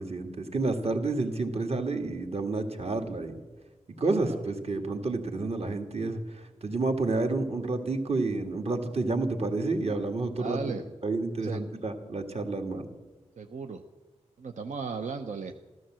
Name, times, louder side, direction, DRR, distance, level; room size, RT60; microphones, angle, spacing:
voice 1, 0.0-3.3 4.0-10.6 11.0-12.9, right 3 dB, 55° right, 5 dB, 1.9 m, -30 dB
voice 2, 10.4-10.9 11.4-11.6 13.4-13.8 14.4-15.5, right 5 dB, 85° right, 5 dB, 0.8 m, -36 dB
14.5 x 13.0 x 7.5 m, 1.2 s
wide cardioid pair, 85°, 12 cm